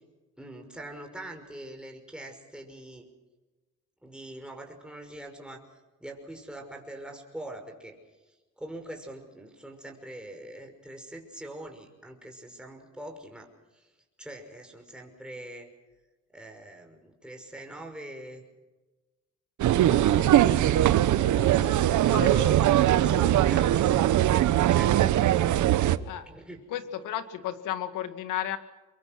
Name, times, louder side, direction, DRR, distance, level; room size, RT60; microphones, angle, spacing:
voice 1, 0.4-3.1 4.0-5.6 6.0-8.0 8.6-13.5 13.7-13.9 14.2-15.7 16.3-18.4 21.3-24.1 24.7-25.0 26.3-26.6, right 1 dB, 5° right, 2 dB, 5.7 m, -43 dB
sound 1, 19.6-26.0, right 12 dB, 75° right, 1.1 m, -21 dB
Piano octave melody, 19.9-25.0 25.9-26.1, left 5 dB, 60° left, 6.3 m, -41 dB
voice 2, 26.7-28.6, left 11 dB, 85° left, 10 dB, 2.1 m, -33 dB
25.0 x 22.5 x 6.1 m, 1.2 s
cardioid pair, 90°, 30 cm